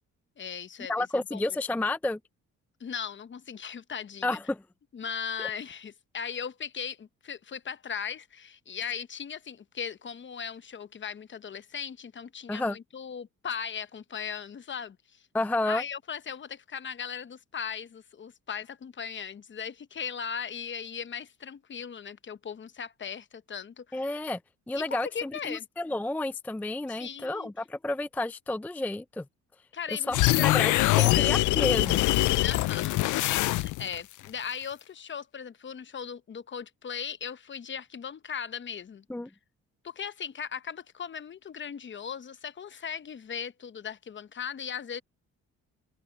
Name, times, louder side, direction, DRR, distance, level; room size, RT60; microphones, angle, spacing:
voice 1, 0.4-1.4 2.8-4.4 4.9-15.3 15.7-24.2 24.7-25.7 26.9-27.5 29.7-31.4 32.4-33.0 33.4-39.0 39.8-45.0, left 7 dB, 40° left, 0.9 m, -38 dB
voice 2, 0.9-2.2 4.2-4.6 12.5-12.8 15.3-15.8 23.9-24.4 24.7-29.3 30.1-32.0 39.1-39.3, left 2 dB, 5° left, 0.4 m, -31 dB
sound 1, 30.1-34.0, left 18 dB, 80° left, 0.5 m, -23 dB
cardioid pair, 90°, 30 cm